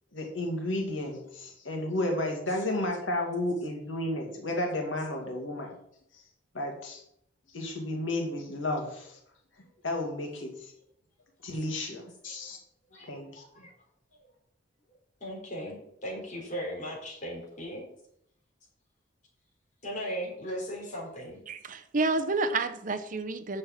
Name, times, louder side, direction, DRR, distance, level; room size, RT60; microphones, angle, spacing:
voice 1, 0.1-5.7 6.5-7.0 7.5-9.1 9.8-10.5 11.4-12.6 13.1-13.4, left 1 dB, 85° left, 2 dB, 2.2 m, -32 dB
voice 2, 13.4-13.7 15.2-17.8 19.8-21.4, equal, 40° left, -1 dB, 3.8 m, -37 dB
voice 3, 21.5-23.6, right 3 dB, 45° right, 10 dB, 0.7 m, -29 dB
6.9 x 6.5 x 7.5 m, 0.73 s
head